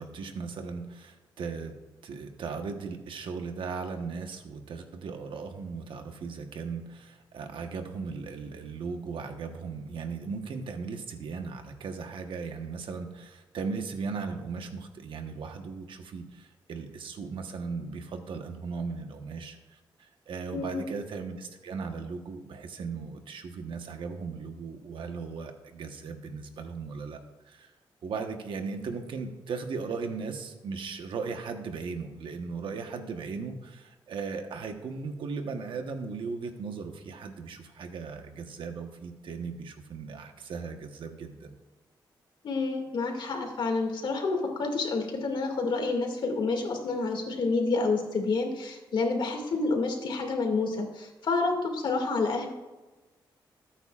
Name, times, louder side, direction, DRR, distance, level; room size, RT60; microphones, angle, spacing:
voice 1, 0.0-1.8 2.0-27.2 27.5-27.7 28.0-41.5, right 5 dB, 80° right, 5 dB, 1.3 m, -37 dB
voice 2, 20.5-20.9 42.4-52.5, left 3 dB, 70° left, 2 dB, 2.3 m, -29 dB
21.0 x 9.0 x 2.5 m, 1.2 s
cardioid pair, 95°, 9 cm